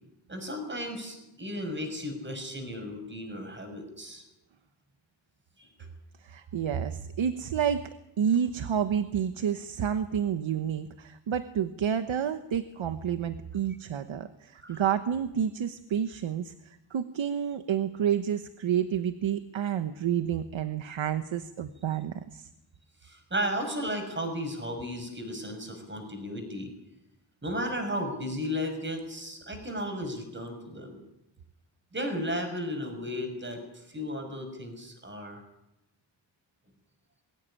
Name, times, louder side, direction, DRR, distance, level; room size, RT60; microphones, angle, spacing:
voice 1, 0.3-4.2 5.6-5.7 14.6-14.8 23.0-26.7 27.4-31.0 31.9-35.4, equal, 25° right, 5 dB, 6.3 m, -34 dB
voice 2, 6.2-7.9 8.2-22.5, right 8 dB, 90° right, 10 dB, 1.2 m, -29 dB
22.5 x 16.5 x 10.0 m, 0.89 s
wide cardioid pair, 120°, 46 cm